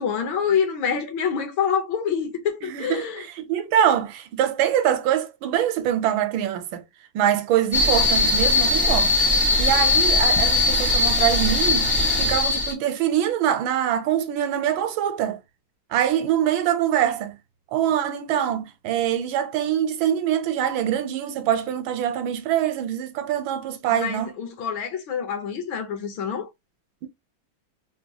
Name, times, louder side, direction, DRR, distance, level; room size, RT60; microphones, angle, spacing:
voice 1, 0.0-3.3 23.9-26.5, left 7 dB, 75° left, 1.6 m, -26 dB
voice 2, 2.6-6.8 7.1-9.2 9.6-11.9 12.2-15.4 15.9-17.4 17.7-24.3, right 10 dB, 80° right, 1.4 m, -24 dB
sound 1, 7.7-12.7, left 2 dB, 10° left, 0.4 m, -20 dB
4.1 x 2.3 x 2.8 m
omnidirectional pair, 2.2 m